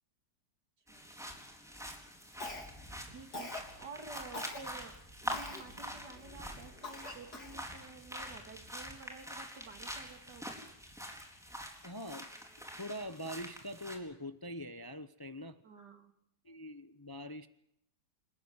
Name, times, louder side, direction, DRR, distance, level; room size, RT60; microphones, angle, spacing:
sound 1, 0.9-14.0, equal, ahead, 4.2 m, -45 dB
voice 1, 0.9-1.2 3.1-10.6 15.6-16.1, right 4 dB, 80° right, 5 dB, 3.2 m, -51 dB
Cough, 2.4-2.9 3.3-3.7 4.3-4.6 5.3-5.7 6.2-6.3 6.8-7.6, left 3 dB, 70° left, 4.0 m, -43 dB
sound 2, 5.1-9.7, right 1 dB, 65° right, 7.8 m, -63 dB
voice 2, 11.8-12.3 12.8-15.6 16.4-17.5, equal, 20° left, 11 dB, 0.6 m, -43 dB
28.0 x 15.0 x 9.6 m, 0.76 s
omnidirectional pair, 1.8 m